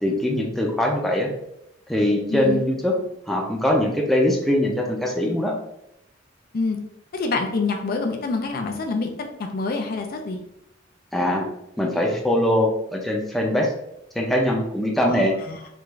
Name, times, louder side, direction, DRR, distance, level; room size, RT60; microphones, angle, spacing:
voice 1, 0.0-1.3 1.9-3.0 3.3-5.5 11.1-11.5 11.8-13.7 14.1-15.4, left 1 dB, ahead, -2 dB, 0.5 m, -22 dB
voice 2, 2.3-2.6 6.5-6.8 7.1-10.4 15.1-15.6, left 3 dB, 50° left, 4 dB, 0.4 m, -27 dB
3.4 x 2.4 x 3.1 m, 0.79 s
head